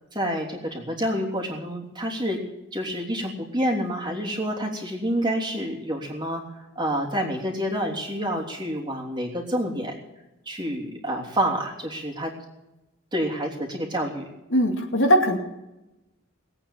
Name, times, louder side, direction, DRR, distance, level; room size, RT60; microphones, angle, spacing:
voice 1, 0.1-2.4 2.7-6.4 6.7-10.0 10.4-12.3 13.1-14.2, equal, 20° right, -1 dB, 3.2 m, -28 dB
voice 2, 14.5-15.4, equal, 60° left, 2 dB, 2.5 m, -20 dB
20.0 x 9.0 x 7.3 m, 0.96 s
head